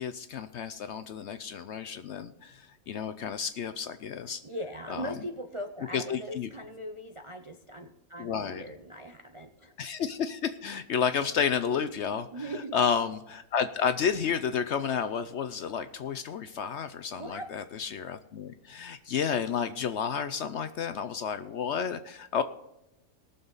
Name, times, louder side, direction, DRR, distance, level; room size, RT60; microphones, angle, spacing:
voice 1, 0.0-4.4 4.9-5.1 5.9-6.5 8.2-8.6 9.8-22.4, left 7 dB, 60° left, 10 dB, 0.7 m, -31 dB
voice 2, 4.3-9.7 12.3-12.8 17.1-17.5, equal, 40° right, 5 dB, 0.4 m, -40 dB
19.5 x 6.9 x 4.0 m, 0.89 s
omnidirectional pair, 1.6 m